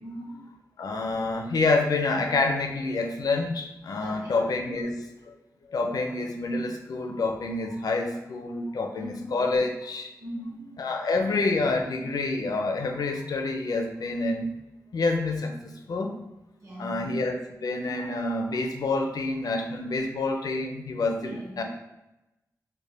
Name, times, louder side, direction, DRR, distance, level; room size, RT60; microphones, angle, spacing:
voice 1, 0.0-0.5 4.0-4.4 9.0-9.5 10.2-10.9 16.6-17.2 21.2-21.6, equal, 50° right, -6 dB, 0.8 m, -40 dB
voice 2, 0.8-5.3 5.7-10.1 10.8-14.5 14.9-16.1 16.8-21.6, left 3 dB, 70° left, 3 dB, 0.4 m, -28 dB
3.3 x 2.1 x 4.1 m, 0.94 s
wide cardioid pair, 105°, 7 cm